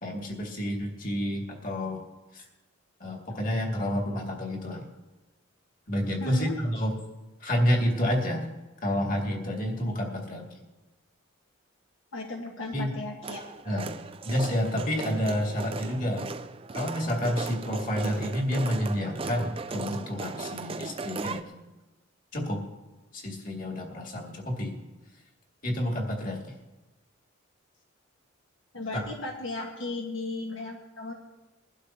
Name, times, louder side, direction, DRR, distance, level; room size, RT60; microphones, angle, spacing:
voice 1, 0.0-2.0 2.3-2.4 3.0-4.9 5.9-6.9 7.4-8.5 8.8-10.5 12.7-12.9 13.7-14.0 14.3-16.3 16.7-21.5 22.3-22.6 23.1-24.7 25.6-26.4 28.9-29.0, equal, 40° left, 0 dB, 2.3 m, -29 dB
voice 2, 6.2-6.6 12.1-13.4 28.7-31.1, left 2 dB, 70° left, 0 dB, 1.4 m, -35 dB
sound 1, 13.2-21.4, right 4 dB, 25° right, 0.4 m, -37 dB
21.5 x 12.0 x 2.9 m, 1.1 s
head